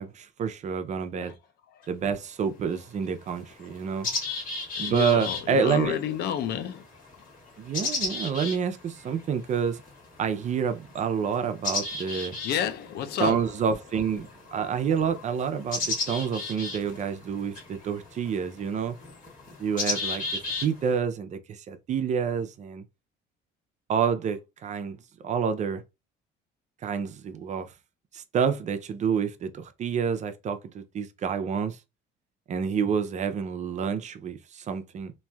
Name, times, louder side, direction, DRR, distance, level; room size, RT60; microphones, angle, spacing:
voice 1, 0.0-1.3 1.9-4.1 4.8-6.0 7.6-9.8 10.2-12.4 13.2-19.0 19.6-20.2 20.6-22.8 23.9-25.0 25.2-25.8 26.8-27.7 28.1-31.8 32.5-35.1, right 7 dB, 40° right, 0.4 m, -28 dB
sound 1, 1.8-1.9 2.8-2.9 3.3-21.0, left 3 dB, 45° left, 1.5 m, -35 dB
voice 2, 4.8-6.8 12.4-13.4, left 9 dB, 60° left, 0.5 m, -30 dB
3.0 x 2.6 x 2.3 m
cardioid pair, 110°, 19 cm